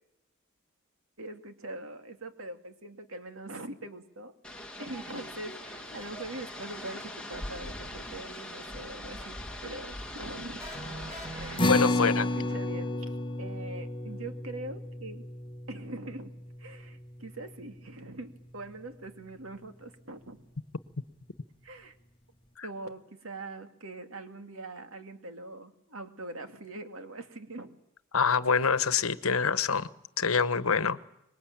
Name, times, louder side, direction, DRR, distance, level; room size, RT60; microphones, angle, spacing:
voice 1, 1.2-4.3 4.8-10.6 11.3-11.7 12.0-15.2 15.7-16.3 16.6-20.4 21.6-22.0 22.6-27.7, right 2 dB, 75° right, 6 dB, 2.3 m, -43 dB
sound 1, 4.4-11.6, left 1 dB, 5° left, 2.2 m, -41 dB
sound 2, 10.6-12.6, right 2 dB, 15° right, 5.5 m, -43 dB
sound 3, 11.6-18.2, left 1 dB, 25° left, 1.2 m, -32 dB
voice 2, 11.7-12.2 22.6-22.7 28.1-29.9 30.2-31.0, left 5 dB, 85° left, 14 dB, 1.1 m, -25 dB
26.0 x 21.5 x 8.8 m, 0.85 s
head